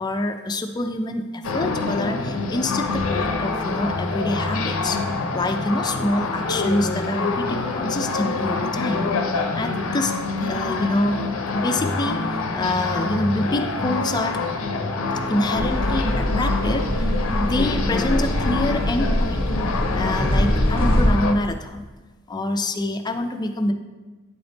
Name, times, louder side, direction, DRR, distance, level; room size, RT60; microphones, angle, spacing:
voice 1, 0.0-5.0 5.3-9.1 9.5-10.1 10.4-11.2 11.5-14.4 15.3-19.5 20.0-21.9 22.3-23.7, left 1 dB, 20° left, 6 dB, 0.4 m, -26 dB
sound 1, 1.4-21.3, left 3 dB, 90° left, 0.6 m, -26 dB
sound 2, 15.5-21.1, equal, 30° right, 1.1 m, -23 dB
8.8 x 3.4 x 3.9 m, 1.2 s
head